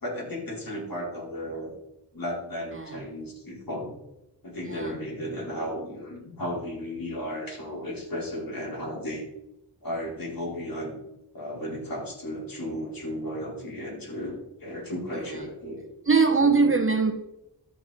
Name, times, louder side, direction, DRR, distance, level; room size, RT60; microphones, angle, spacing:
voice 1, 0.0-1.7 2.1-3.9 4.4-9.3 9.8-11.0 11.3-15.8 16.4-16.9, equal, 55° left, -4 dB, 4.4 m, -34 dB
voice 2, 16.1-17.1, right 4 dB, 30° right, 7 dB, 1.1 m, -21 dB
13.5 x 5.9 x 4.2 m, 0.86 s
wide cardioid pair, 65°, 40 cm